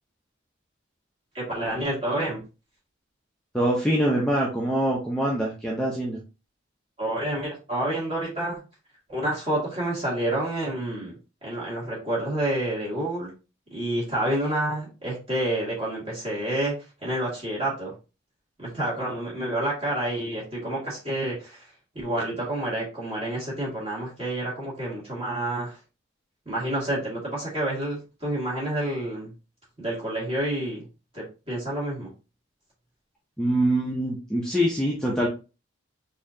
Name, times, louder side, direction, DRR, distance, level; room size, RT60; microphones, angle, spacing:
voice 1, 1.3-2.4 7.0-8.6 9.1-13.3 13.7-16.7 17.0-17.9 18.6-21.6 21.9-25.8 26.5-29.3 29.8-30.9 31.1-32.1, right 1 dB, 30° right, -6 dB, 1.9 m, -29 dB
voice 2, 3.5-6.2 33.4-35.3, right 1 dB, 5° left, -3 dB, 0.5 m, -24 dB
4.1 x 2.7 x 2.6 m, 0.31 s
head